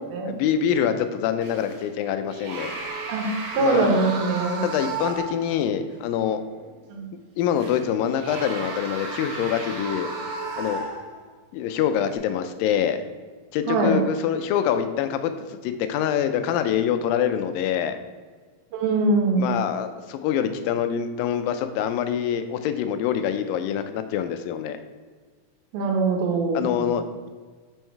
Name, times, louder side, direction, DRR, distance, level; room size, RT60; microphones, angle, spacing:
voice 1, 0.3-2.7 3.6-3.9 4.6-6.4 7.4-10.1 10.6-10.8 11.5-13.0 13.5-18.0 19.4-24.8 26.5-27.3, left 9 dB, 80° left, 9 dB, 2.2 m, -25 dB
sound 1, 1.4-1.9 2.3-5.5 5.9-6.0 7.6-11.3 11.9-12.2, right 3 dB, 70° right, 1.5 m, -34 dB
voice 2, 3.1-4.6 6.9-7.1 13.7-14.0 18.7-19.5 25.7-26.7, right 3 dB, 90° right, 2 dB, 2.9 m, -23 dB
6.1 x 5.4 x 4.5 m, 1.5 s
omnidirectional pair, 4.1 m